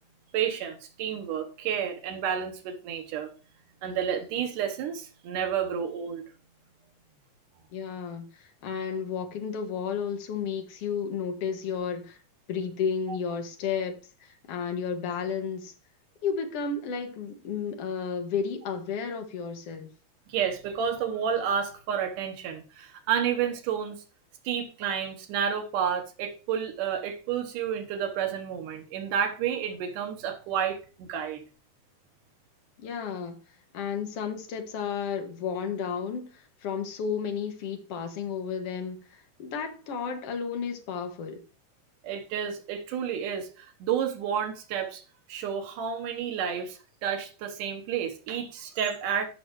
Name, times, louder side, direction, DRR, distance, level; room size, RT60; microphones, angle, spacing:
voice 1, 0.3-3.3 3.8-6.2 20.3-24.0 24.4-31.4 42.0-45.0 45.3-49.3, right 8 dB, 85° right, 2.8 m, -30 dB
voice 2, 7.7-12.2 12.5-15.7 16.2-19.9 32.8-33.4 33.7-41.4, left 6 dB, 55° left, 2.2 m, -32 dB
12.5 x 6.3 x 3.2 m
omnidirectional pair, 3.7 m